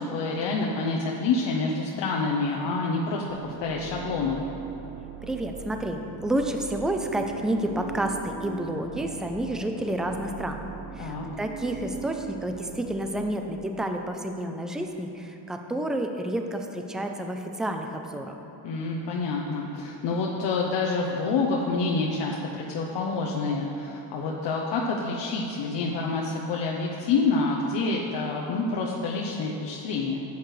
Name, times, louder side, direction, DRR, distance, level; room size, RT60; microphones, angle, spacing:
voice 1, 0.0-4.4 11.0-11.3 18.6-30.2, left 3 dB, 70° left, -2 dB, 0.9 m, -27 dB
sound 1, 3.3-14.1, right 7 dB, 45° right, 0.9 m, -41 dB
voice 2, 5.2-10.6 11.0-18.4, right 1 dB, ahead, 5 dB, 0.4 m, -30 dB
11.5 x 8.3 x 3.2 m, 2.9 s
cardioid pair, 130°, 44 cm